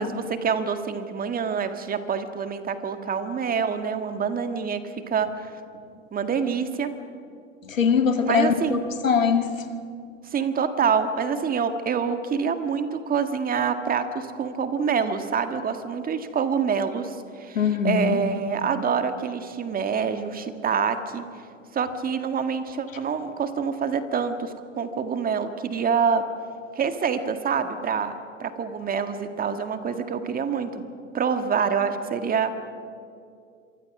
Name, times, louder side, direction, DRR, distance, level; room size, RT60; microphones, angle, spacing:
voice 1, 0.0-5.5 6.1-6.9 8.3-8.8 10.3-17.6 17.8-21.2 21.7-26.2 26.7-30.8 31.1-32.5, right 6 dB, 20° right, 8 dB, 1.8 m, -26 dB
voice 2, 7.6-9.5 17.6-18.2 22.9-23.0, left 6 dB, 85° left, 7 dB, 2.2 m, -22 dB
26.5 x 24.5 x 6.1 m, 2.4 s
hypercardioid pair, 100°, 38 cm